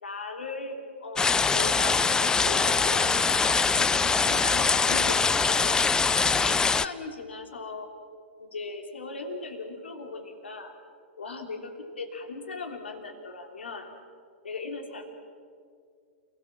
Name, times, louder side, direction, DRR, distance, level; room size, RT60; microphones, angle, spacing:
voice 1, 0.0-5.8 6.3-7.9 8.4-10.7 11.2-13.9 14.4-15.1, left 3 dB, 80° left, 4 dB, 3.2 m, -38 dB
sound 1, 1.2-6.9, left 5 dB, 10° left, 0.5 m, -23 dB
29.0 x 17.0 x 7.3 m, 2.2 s
hypercardioid pair, 110°, 6 cm